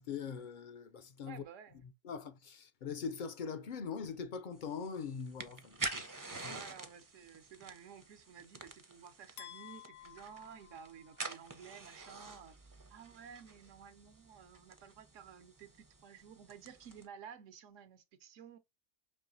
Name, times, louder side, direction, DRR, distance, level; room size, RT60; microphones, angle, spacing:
voice 1, 0.0-1.4 2.0-6.0 6.3-6.6, left 6 dB, 60° left, 0.5 m, -42 dB
voice 2, 1.3-1.9 6.5-12.6 12.9-18.6, right 7 dB, 85° right, 1.0 m, -53 dB
sound 1, 4.6-17.0, right 2 dB, 25° right, 0.4 m, -48 dB
sound 2, 9.4-11.5, left 11 dB, 80° left, 0.9 m, -53 dB
5.4 x 3.0 x 2.6 m
omnidirectional pair, 1.3 m